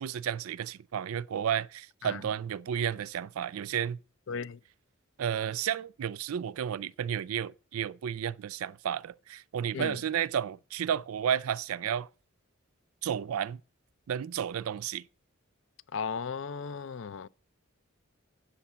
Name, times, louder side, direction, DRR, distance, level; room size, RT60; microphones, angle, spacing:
voice 1, 0.0-4.0 5.2-12.1 13.0-13.6 14.1-15.0, right 8 dB, 85° right, 0.4 m, -32 dB
voice 2, 4.3-4.6 9.7-10.0 15.9-17.3, left 6 dB, 60° left, 0.4 m, -36 dB
8.2 x 7.2 x 6.8 m
head